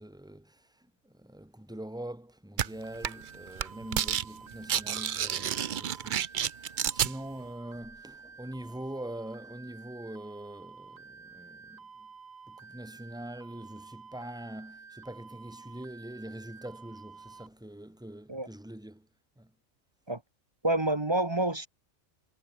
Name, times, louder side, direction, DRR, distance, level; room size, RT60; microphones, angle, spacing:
voice 1, 0.0-6.3 6.5-12.1 12.5-19.1 19.4-19.5, right 1 dB, 5° right, 2.4 m, -43 dB
sound 1, 2.6-2.7 3.0-3.3 3.6-4.2 4.5-7.1, right 9 dB, 50° right, 0.6 m, -29 dB
sound 2, 2.8-17.5, right 5 dB, 75° right, 2.4 m, -51 dB
voice 2, 20.6-21.7, right 1 dB, 20° right, 1.1 m, -28 dB
omnidirectional pair, 1.4 m